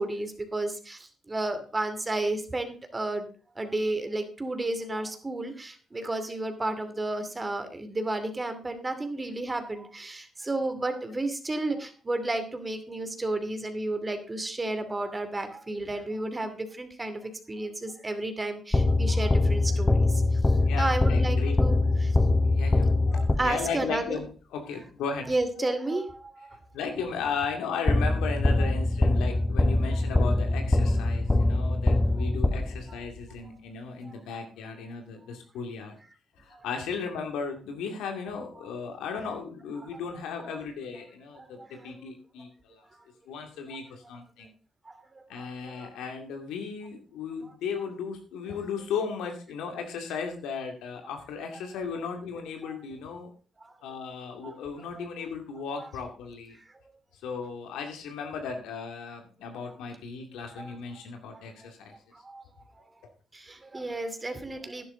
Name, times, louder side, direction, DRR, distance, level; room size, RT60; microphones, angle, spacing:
voice 1, 0.0-3.3 3.6-20.4 20.8-21.8 22.0-22.3 23.1-24.2 25.3-26.6 28.6-28.7 31.9-32.1 34.1-34.2 36.5-36.6 41.4-41.9 43.7-43.8 44.9-45.9 51.9-52.0 52.6-52.8 53.6-53.7 54.4-54.6 56.8-56.9 60.6-60.8 61.3-61.4 62.1-62.4 63.3-64.8, right 2 dB, 25° right, 8 dB, 2.6 m, -32 dB
sound 1, 18.7-23.8 27.9-33.1, left 2 dB, 20° left, 1.1 m, -23 dB
voice 2, 20.7-21.6 22.4-25.3 25.6-26.0 26.7-36.0 36.4-42.8 43.3-44.5 45.3-53.3 53.8-56.6 57.1-62.0, left 5 dB, 85° left, 4 dB, 2.4 m, -36 dB
11.5 x 10.5 x 3.8 m, 0.37 s
supercardioid pair, 65°, 0 cm